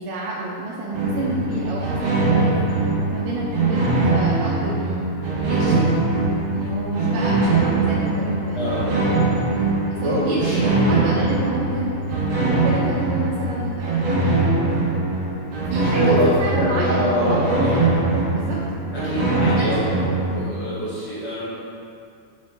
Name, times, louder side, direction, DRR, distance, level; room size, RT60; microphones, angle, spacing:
voice 1, 0.0-2.6 3.1-5.9 6.5-9.0 9.9-11.9 12.5-14.2 14.5-15.0 15.7-17.5 18.3-18.6 19.4-20.1 20.4-20.6, right 2 dB, 90° right, -5 dB, 2.4 m, -29 dB
sound 1, 0.9-20.4, right 2 dB, 65° right, 1.7 m, -22 dB
voice 2, 8.5-8.9 10.0-11.1 15.9-17.8 18.9-19.8 20.3-21.5, equal, 45° left, -10 dB, 1.6 m, -24 dB
5.3 x 5.2 x 4.6 m, 2.4 s
omnidirectional pair, 3.7 m